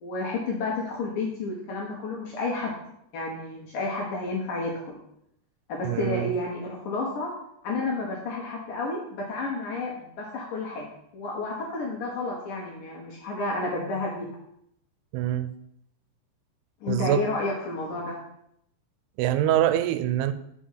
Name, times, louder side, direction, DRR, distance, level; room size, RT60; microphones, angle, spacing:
voice 1, 0.0-2.8 3.1-5.0 5.7-7.3 7.6-10.9 11.1-14.3 16.8-18.2, left 3 dB, 65° left, -3 dB, 2.2 m, -31 dB
voice 2, 5.8-6.3 15.1-15.5 16.9-17.3 19.2-20.3, right 12 dB, 90° right, 11 dB, 3.0 m, -24 dB
6.3 x 6.2 x 5.6 m, 0.75 s
omnidirectional pair, 5.3 m